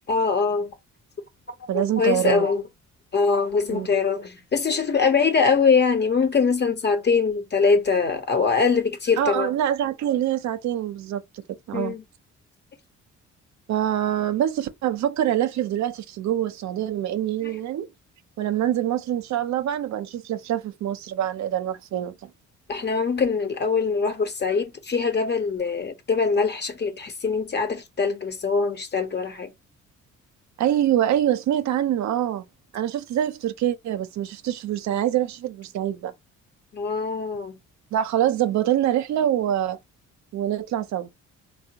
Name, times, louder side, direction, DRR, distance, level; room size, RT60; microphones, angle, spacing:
voice 1, 0.1-0.7 1.7-2.6 3.1-9.5 11.7-12.0 17.4-17.5 22.7-29.5 36.7-37.6, left 5 dB, 35° left, 0.8 m, -23 dB
voice 2, 1.7-2.5 3.7-3.9 9.2-11.2 11.7-11.9 13.7-17.9 18.4-22.3 30.6-32.4 32.7-36.1 37.9-39.8 40.3-41.1, right 11 dB, 65° right, 0.5 m, -25 dB
3.4 x 2.1 x 2.8 m
cardioid pair, 90°, 30 cm